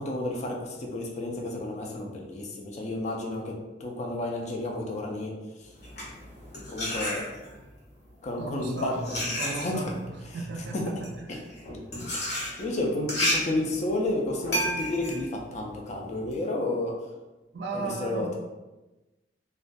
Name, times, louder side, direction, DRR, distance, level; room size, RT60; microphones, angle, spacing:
voice 1, 0.0-5.3 6.7-7.4 8.2-9.9 10.7-10.8 11.3-11.4 12.1-12.3 12.6-16.9 17.7-18.4, left 2 dB, 40° left, 0 dB, 0.4 m, -31 dB
sound 1, 5.7-7.7 8.4-16.3, equal, 65° left, 0.8 m, -32 dB
voice 2, 8.4-10.0 10.3-11.4 15.9-16.1 17.5-18.4, right 3 dB, 75° right, 1 dB, 0.4 m, -36 dB
2.2 x 2.2 x 2.5 m, 1.1 s
head